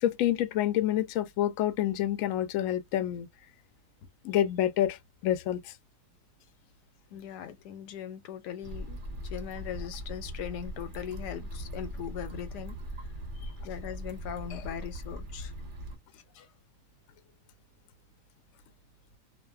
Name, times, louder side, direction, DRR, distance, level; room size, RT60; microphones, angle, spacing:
voice 1, 0.0-3.3 4.2-5.0 5.2-5.7, left 12 dB, 70° left, 0.8 m, -27 dB
voice 2, 7.1-12.8 13.6-15.5 16.1-16.5, left 9 dB, 90° left, 1.2 m, -40 dB
sound 1, 8.6-16.0, equal, 55° right, 0.5 m, -40 dB
2.5 x 2.2 x 2.3 m
omnidirectional pair, 1.8 m